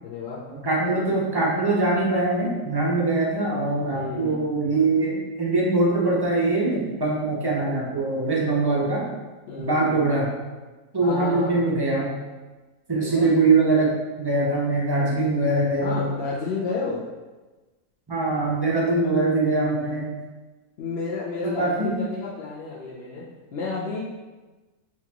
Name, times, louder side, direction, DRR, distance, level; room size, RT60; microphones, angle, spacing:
voice 1, 0.0-0.4 3.9-4.4 9.5-10.1 11.0-11.7 12.9-13.3 15.8-17.0 20.8-23.3 23.5-24.0, left 4 dB, 60° left, -7 dB, 0.7 m, -31 dB
voice 2, 0.6-9.0 9.6-10.3 10.9-12.2 12.9-16.1 18.1-20.1 21.4-21.9, right 2 dB, 30° right, -4 dB, 0.4 m, -22 dB
5.7 x 2.4 x 2.9 m, 1.2 s
omnidirectional pair, 1.5 m